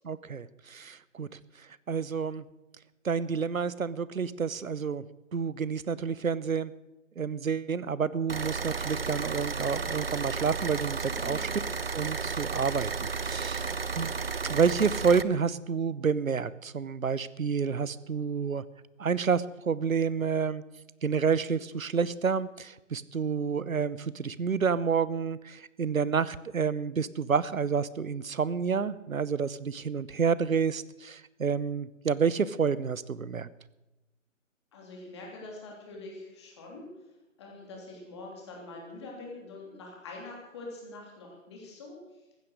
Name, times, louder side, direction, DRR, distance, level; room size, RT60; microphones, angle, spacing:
voice 1, 0.0-2.4 3.0-5.0 5.3-6.7 7.2-11.5 11.9-13.7 14.0-14.1 14.4-18.6 19.0-20.6 21.0-33.5, right 6 dB, 80° right, 18 dB, 0.9 m, -29 dB
sound 1, 8.3-15.2, right 5 dB, 50° right, 0.6 m, -33 dB
voice 2, 11.1-11.6 13.6-14.2 34.7-36.9 37.4-42.0, left 2 dB, 20° left, -1 dB, 3.1 m, -45 dB
15.5 x 11.5 x 6.5 m, 1.0 s
figure-of-eight pair, 165°, 40 cm